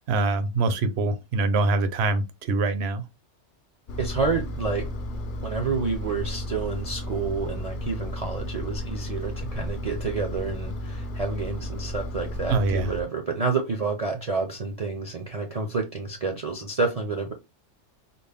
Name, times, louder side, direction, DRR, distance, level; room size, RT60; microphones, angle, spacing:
voice 1, 0.1-3.0 12.5-12.9, right 3 dB, 65° right, 0.9 m, -24 dB
Engine, 3.9-13.0, left 1 dB, 55° left, 0.6 m, -33 dB
voice 2, 4.0-4.9 5.4-17.3, right 4 dB, 40° right, 0.5 m, -29 dB
4.1 x 2.0 x 3.4 m
omnidirectional pair, 1.3 m